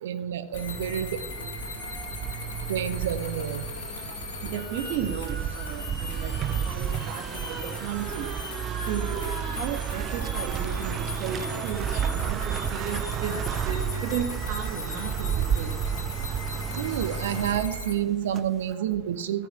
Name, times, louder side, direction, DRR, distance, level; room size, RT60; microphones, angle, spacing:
voice 1, 0.0-1.2 2.7-3.6 16.8-19.5, right 10 dB, 60° right, 10 dB, 0.9 m, -29 dB
sound 1, 0.5-17.9, left 4 dB, 60° left, 3.2 m, -39 dB
sound 2, 0.5-18.7, right 9 dB, 30° right, 0.6 m, -32 dB
voice 2, 4.4-6.3 6.7-7.4 7.8-8.3 8.9-15.7, right 8 dB, 45° right, 5 dB, 1.5 m, -34 dB
14.0 x 6.0 x 7.2 m, 0.99 s
figure-of-eight pair, 90°, 0 cm